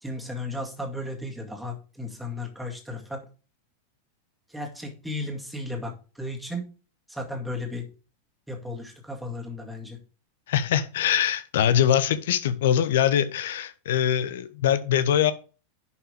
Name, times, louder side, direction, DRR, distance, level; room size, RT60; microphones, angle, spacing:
voice 1, 0.0-3.3 4.5-6.7 7.1-7.9 8.5-10.0, left 1 dB, 5° right, 2.1 m, -35 dB
voice 2, 10.5-15.3, left 10 dB, 55° left, 0.9 m, -23 dB
11.0 x 5.7 x 3.5 m
figure-of-eight pair, 90°, 0 cm